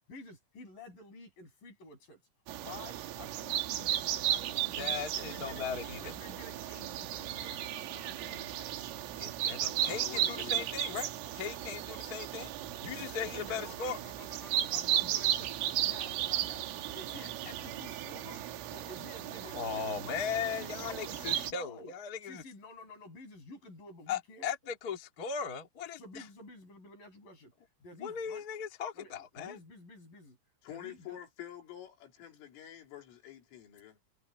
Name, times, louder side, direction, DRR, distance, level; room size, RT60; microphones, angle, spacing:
voice 1, 0.1-2.2 2.5-5.7 6.0-8.7 12.9-15.5 15.8-18.5 18.7-21.9 22.2-24.5 26.0-27.5 27.8-28.4 28.9-30.4 30.7-31.2, left 2 dB, 45° left, 8.8 m, -51 dB
Camp Norway RF, 2.5-21.5, right 12 dB, 85° right, 4.3 m, -35 dB
voice 2, 4.8-6.1 9.2-11.1 11.3-12.5 12.8-14.0 19.5-22.4 24.1-26.2 28.0-29.6, left 6 dB, 70° left, 0.9 m, -38 dB
voice 3, 9.8-10.7 30.6-34.0, left 11 dB, 85° left, 5.8 m, -47 dB
omnidirectional pair, 5.6 m